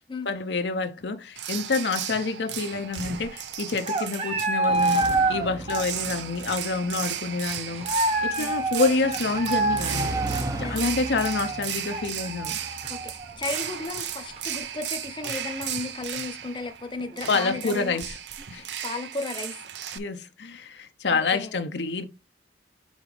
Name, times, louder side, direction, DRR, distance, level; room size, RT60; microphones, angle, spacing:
voice 1, 0.3-5.0 5.3-10.1 10.6-12.6 17.3-18.2 18.5-18.7 19.9-22.1, left 4 dB, 75° left, 0.7 m, -28 dB
sound 1, 1.4-20.0, right 9 dB, 75° right, 0.6 m, -35 dB
sound 2, 2.7-2.8 3.0-3.3 3.7-6.2 6.5-6.6 7.8-14.0 14.4-14.5 15.2-15.4 15.8-15.9 16.2-16.3 18.0-18.3, right 2 dB, 35° right, 1.0 m, -27 dB
sound 3, 4.7-15.6, right 1 dB, 20° right, 0.5 m, -38 dB
voice 2, 8.4-8.7 10.6-10.9 12.9-18.0 18.8-19.6 21.1-21.6, left 3 dB, 25° left, 0.8 m, -35 dB
5.3 x 4.0 x 4.9 m
head